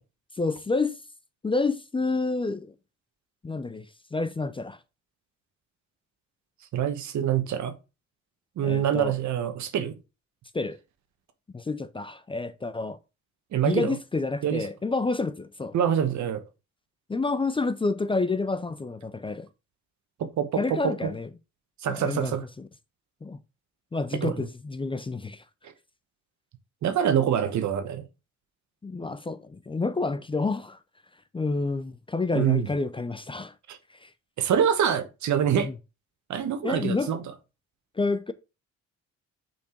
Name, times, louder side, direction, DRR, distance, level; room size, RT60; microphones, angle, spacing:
voice 1, 0.4-0.9 1.4-2.7 3.4-3.9 4.1-4.8 8.6-9.2 10.5-10.8 11.5-13.0 13.6-15.7 17.1-19.5 20.6-21.3 21.9-22.7 23.2-23.4 23.9-25.4 28.8-30.8 31.3-33.5 34.0-34.1 35.5-35.7 36.6-37.1 38.0-38.3, left 3 dB, 15° left, 0.5 m, -29 dB
voice 2, 6.7-7.8 8.6-10.0 13.5-14.0 14.4-14.6 15.7-16.4 20.2-21.1 21.8-22.4 24.1-24.5 26.8-28.0 32.3-32.7 33.7-33.8 34.4-35.7 36.3-37.2, right 9 dB, 70° right, 1.2 m, -25 dB
5.7 x 4.5 x 4.4 m
cardioid pair, 90°, 30 cm